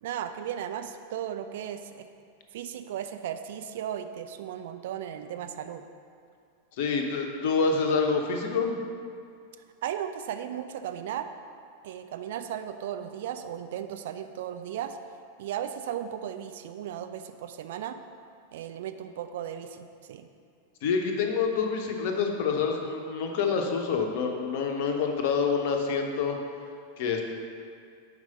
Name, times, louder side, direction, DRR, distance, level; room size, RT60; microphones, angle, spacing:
voice 1, 0.0-2.1 2.5-5.8 9.8-11.3 11.8-15.0 15.4-18.0 18.5-20.3, right 10 dB, 55° right, 8 dB, 0.3 m, -36 dB
voice 2, 6.8-8.8 20.8-26.4 27.0-27.2, left 5 dB, 50° left, 3 dB, 0.7 m, -27 dB
4.8 x 4.7 x 5.3 m, 2.3 s
figure-of-eight pair, 90°, 0 cm